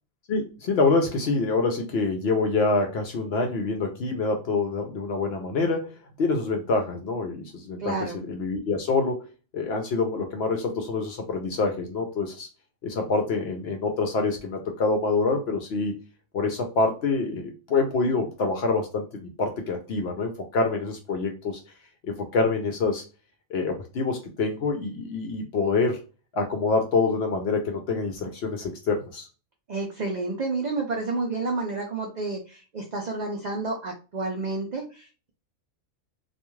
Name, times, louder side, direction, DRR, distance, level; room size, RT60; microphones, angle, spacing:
voice 1, 0.3-12.5 12.8-16.0 16.3-21.6 22.0-23.0 23.5-26.0 26.3-29.3, left 3 dB, 65° left, 4 dB, 0.7 m, -26 dB
voice 2, 7.8-8.2 29.7-35.3, right 3 dB, 85° right, 0 dB, 0.3 m, -30 dB
2.4 x 2.3 x 3.0 m, 0.33 s
omnidirectional pair, 1.4 m